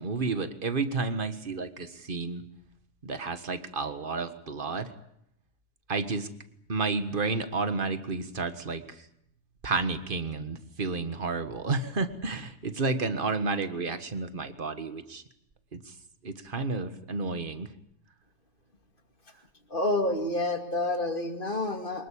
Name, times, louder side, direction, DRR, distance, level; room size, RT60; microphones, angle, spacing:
voice 1, 0.0-2.4 3.0-4.9 5.9-6.3 6.7-9.1 9.6-15.2 15.7-15.9 16.2-17.7, right 3 dB, 45° right, 10 dB, 1.7 m, -31 dB
voice 2, 19.7-22.1, left 2 dB, 45° left, 5 dB, 2.7 m, -28 dB
24.5 x 21.0 x 8.6 m, 0.75 s
omnidirectional pair, 1.2 m